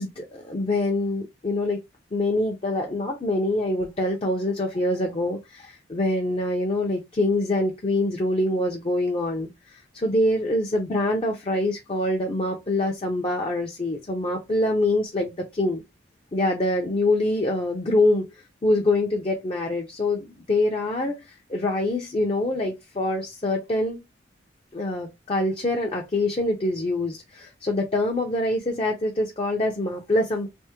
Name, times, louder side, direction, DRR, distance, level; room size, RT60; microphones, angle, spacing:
voice 1, 0.0-1.8 2.1-15.3 15.6-15.8 16.3-18.3 18.6-24.0 24.7-30.5, left 1 dB, 30° left, 0.5 m, -25 dB
3.3 x 2.0 x 2.8 m
head